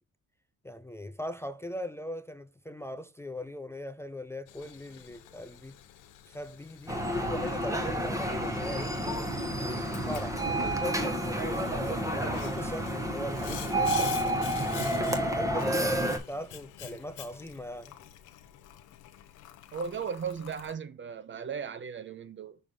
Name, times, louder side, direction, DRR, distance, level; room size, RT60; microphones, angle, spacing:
voice 1, 0.6-5.8 6.3-9.0 9.5-14.4 15.2-17.9, left 1 dB, 10° left, 0.5 m, -39 dB
Boiling, 4.5-20.7, left 11 dB, 90° left, 0.9 m, -46 dB
sound 1, 6.9-16.2, right 1 dB, 10° right, 1.2 m, -30 dB
voice 2, 19.7-22.6, right 6 dB, 40° right, 0.7 m, -36 dB
6.2 x 3.4 x 5.4 m
cardioid pair, 90°, 30 cm